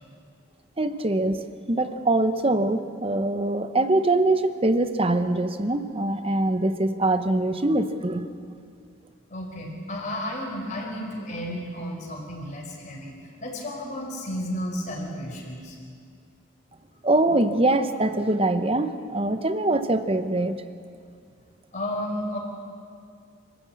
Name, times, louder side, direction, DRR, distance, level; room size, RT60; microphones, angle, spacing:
voice 1, 0.8-8.2 17.0-20.6, right 2 dB, 30° right, 10 dB, 0.9 m, -23 dB
voice 2, 9.3-15.8 21.7-22.4, equal, 40° left, -1 dB, 4.5 m, -33 dB
26.5 x 13.0 x 8.5 m, 2.3 s
head